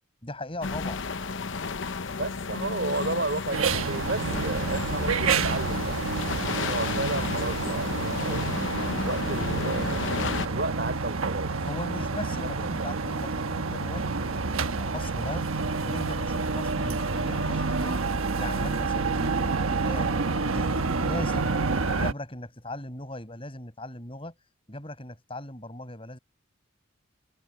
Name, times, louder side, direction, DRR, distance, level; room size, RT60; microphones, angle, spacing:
voice 1, 0.2-1.0 11.6-15.4 15.8-18.0 18.3-21.6 21.9-24.4 24.7-26.2, left 1 dB, 25° left, 7.3 m, -38 dB
sound 1, 0.6-10.5, left 4 dB, 65° left, 0.8 m, -32 dB
voice 2, 2.2-6.0 6.5-8.5 9.0-11.5 12.0-12.2 12.6-13.0, right 2 dB, 55° right, 5.0 m, -33 dB
sound 2, 3.5-22.1, right 4 dB, 85° right, 1.2 m, -28 dB
head